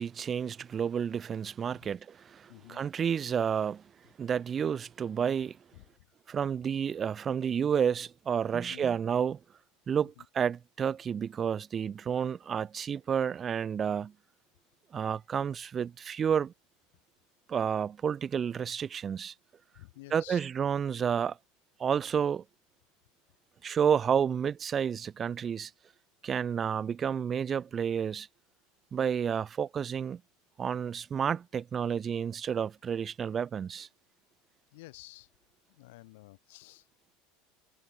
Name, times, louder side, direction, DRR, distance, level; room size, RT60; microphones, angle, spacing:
voice 1, 0.0-3.8 4.2-5.6 6.3-9.4 9.9-14.1 14.9-16.5 17.5-19.3 20.1-21.4 21.8-22.4 23.6-25.7 26.2-28.3 28.9-30.2 30.6-33.9, right 7 dB, 30° right, 0.7 m, -30 dB
voice 2, 2.5-2.8 5.7-6.1 8.5-8.9 10.0-10.3 19.7-20.5 34.7-35.3 35.7-36.9, left 21 dB, 70° left, 7.2 m, -51 dB
hypercardioid pair, 80°, 0 cm